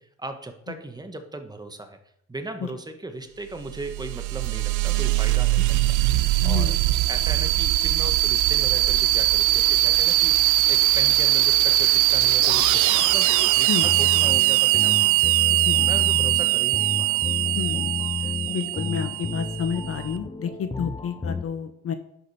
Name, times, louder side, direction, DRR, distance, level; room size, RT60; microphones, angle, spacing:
voice 1, 0.0-2.0 2.3-5.8 6.4-6.8 7.1-10.4 10.7-15.2 15.8-17.2, right 2 dB, 15° right, 7 dB, 1.2 m, -37 dB
sound 1, 3.6-20.0, right 16 dB, 80° right, 0.5 m, -21 dB
voice 2, 6.4-6.8 13.7-13.9 15.5-15.9 16.2-16.3 17.5-18.0 18.5-21.9, left 7 dB, 50° left, 10 dB, 0.8 m, -30 dB
sound 2, 13.8-21.4, left 4 dB, 15° left, 0.6 m, -31 dB
11.0 x 5.0 x 4.2 m, 0.75 s
cardioid pair, 90°, 30 cm